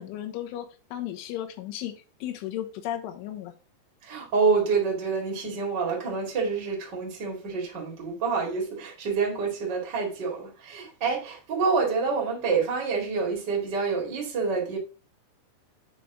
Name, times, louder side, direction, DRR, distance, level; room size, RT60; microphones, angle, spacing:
voice 1, 0.0-3.5, left 12 dB, 80° left, 3.4 m, -35 dB
voice 2, 4.0-14.8, right 5 dB, 40° right, 1.5 m, -27 dB
8.4 x 4.6 x 3.8 m
omnidirectional pair, 5.7 m